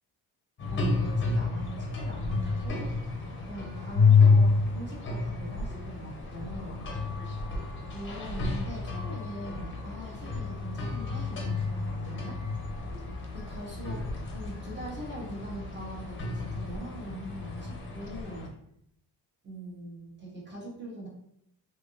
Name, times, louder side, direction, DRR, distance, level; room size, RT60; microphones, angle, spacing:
sound 1, 0.6-18.5, left 4 dB, 30° left, 0.7 m, -29 dB
voice 1, 0.7-2.9 3.5-6.8 7.9-12.4 13.3-18.5 19.4-21.1, right 1 dB, 25° right, -3 dB, 1.1 m, -42 dB
3.3 x 2.8 x 2.5 m, 0.73 s
cardioid pair, 115°, 41 cm